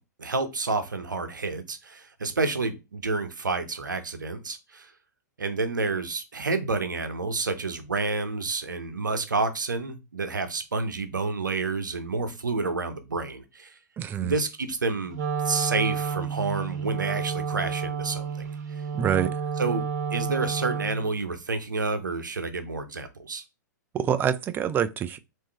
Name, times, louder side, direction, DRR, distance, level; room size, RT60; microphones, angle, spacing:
voice 1, 0.2-4.9 5.4-13.7 14.2-18.5 19.6-19.8 20.1-23.4, right 3 dB, 85° right, 0.8 m, -29 dB
voice 2, 14.0-14.4 18.9-19.4 23.9-25.2, right 9 dB, 20° right, 0.4 m, -26 dB
Wind instrument woodwind instrument, 15.1-21.1, right 6 dB, 60° right, 1.0 m, -30 dB
3.6 x 2.7 x 4.5 m
hypercardioid pair, 110°, 10 cm